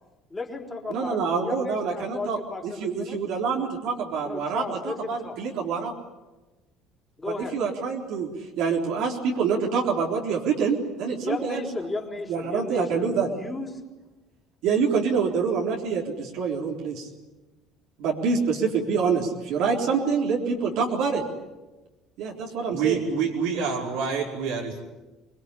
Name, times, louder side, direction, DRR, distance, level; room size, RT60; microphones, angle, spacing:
voice 1, 0.3-1.2 1.4-3.2 4.2-5.4 7.2-7.5 11.2-13.7, left 3 dB, 15° left, 2 dB, 4.2 m, -34 dB
voice 2, 0.9-2.4 2.6-5.9 7.2-8.3 8.6-11.6 12.3-13.3 14.6-17.1 18.0-21.2 22.2-23.0, right 5 dB, 70° right, -1 dB, 4.0 m, -26 dB
voice 3, 22.7-24.8, right 6 dB, 85° right, -2 dB, 5.5 m, -27 dB
25.0 x 20.5 x 10.0 m, 1.1 s
cardioid pair, 120°, 0 cm